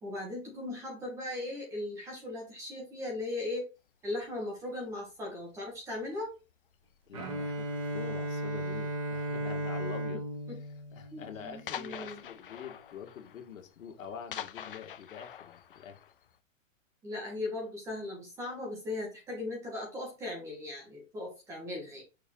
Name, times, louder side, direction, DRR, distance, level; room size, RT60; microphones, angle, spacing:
voice 1, 0.0-3.6 4.0-6.3 10.5-10.6 11.1-12.2 17.0-22.0, left 2 dB, 5° right, 1.3 m, -38 dB
sound 1, 4.0-4.2 5.0-5.4 5.7-6.1 6.5-6.7 7.2-7.3 7.5-7.6 8.5-8.9 9.7-9.8 10.2-10.3 10.7-10.8 11.0-11.1 11.7-16.4, left 9 dB, 45° left, 0.5 m, -45 dB
voice 2, 7.1-10.2 10.9-16.0, left 8 dB, 85° left, 1.9 m, -45 dB
Bowed string instrument, 7.1-12.0, right 1 dB, 25° right, 0.8 m, -36 dB
6.4 x 3.8 x 4.3 m
hypercardioid pair, 180°, 39 cm